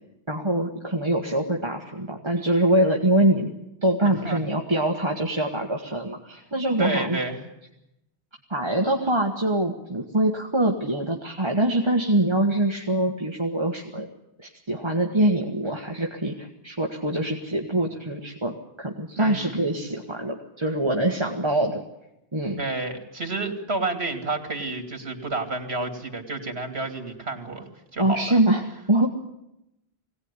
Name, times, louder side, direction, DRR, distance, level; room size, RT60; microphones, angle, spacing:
voice 1, 0.3-3.5 3.8-7.2 8.5-14.1 14.4-21.8 22.3-22.6 28.0-29.1, right 1 dB, 25° right, 1 dB, 1.6 m, -24 dB
voice 2, 4.0-4.4 6.8-7.4 19.2-19.6 22.6-28.4, right 3 dB, 75° right, 6 dB, 3.1 m, -30 dB
22.0 x 18.0 x 9.8 m, 0.87 s
omnidirectional pair, 1.1 m